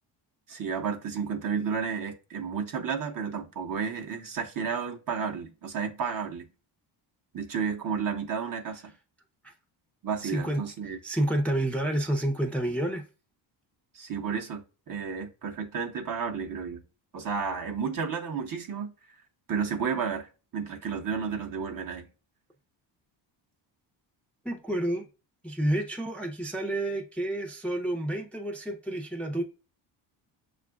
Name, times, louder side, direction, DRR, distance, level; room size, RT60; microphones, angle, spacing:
voice 1, 0.5-6.5 7.3-8.9 10.0-11.0 13.9-16.8 17.1-18.9 19.5-22.1, right 6 dB, 45° right, 0.8 m, -32 dB
voice 2, 10.2-10.6 11.0-13.0 24.4-25.0 25.4-29.4, right 1 dB, 5° left, 0.5 m, -29 dB
6.7 x 2.5 x 2.2 m
cardioid pair, 85°, 48 cm